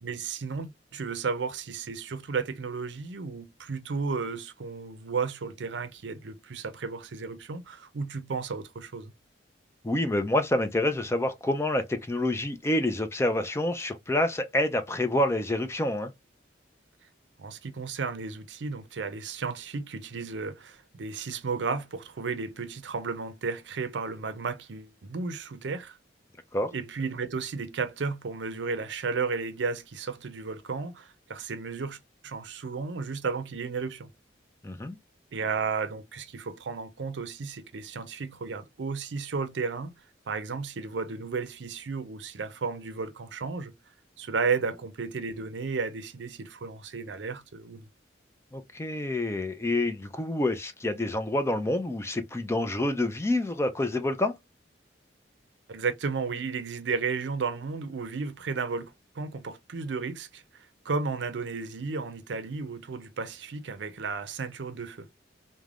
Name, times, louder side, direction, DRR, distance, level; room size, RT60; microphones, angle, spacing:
voice 1, 0.0-9.1 17.4-26.0 26.7-32.0 32.2-34.1 35.3-39.9 40.3-43.7 44.2-47.9 55.7-60.4 60.8-65.1, right 4 dB, 75° right, 0.5 m, -33 dB
voice 2, 9.8-16.1 26.5-26.7 34.6-35.0 48.5-54.4, left 1 dB, 15° left, 0.4 m, -27 dB
3.2 x 2.1 x 2.4 m
head